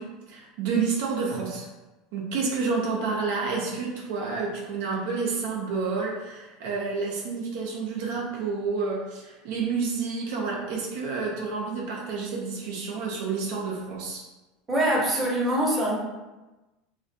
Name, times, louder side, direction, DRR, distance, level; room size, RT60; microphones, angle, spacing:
voice 1, 0.0-1.7 2.1-14.2, right 4 dB, 70° right, -2 dB, 0.4 m, -29 dB
voice 2, 14.7-16.0, right 1 dB, 20° right, -3 dB, 0.7 m, -24 dB
2.3 x 2.1 x 2.6 m, 1.1 s
hypercardioid pair, 95°, 0 cm